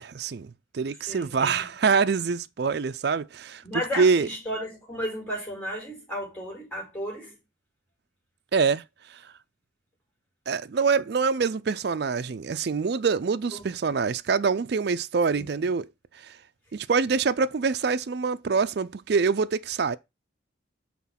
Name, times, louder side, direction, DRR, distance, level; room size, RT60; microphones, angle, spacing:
voice 1, 0.0-3.6 4.0-4.3 8.5-8.8 9.1-9.2 10.5-15.9 16.2-16.3 16.7-20.0, right 5 dB, 55° right, 0.4 m, -25 dB
voice 2, 1.0-1.7 3.6-7.4 13.5-13.6 15.3-15.7, equal, 5° left, 4.5 m, -34 dB
6.0 x 4.3 x 5.7 m
head